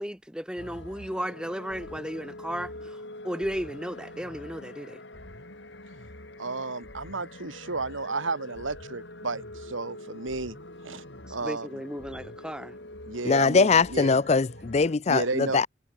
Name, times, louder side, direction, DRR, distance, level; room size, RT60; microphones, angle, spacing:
voice 1, 0.0-3.0 3.2-5.0 11.2-12.7, equal, 5° right, 2.2 m, -34 dB
sound 1, 0.6-15.0, left 1 dB, 60° left, 4.8 m, -44 dB
voice 2, 6.4-10.6 10.8-11.0 11.3-11.8 13.0-14.2 15.1-15.7, right 3 dB, 80° right, 2.6 m, -32 dB
voice 3, 13.2-15.7, left 4 dB, 35° left, 0.4 m, -22 dB
head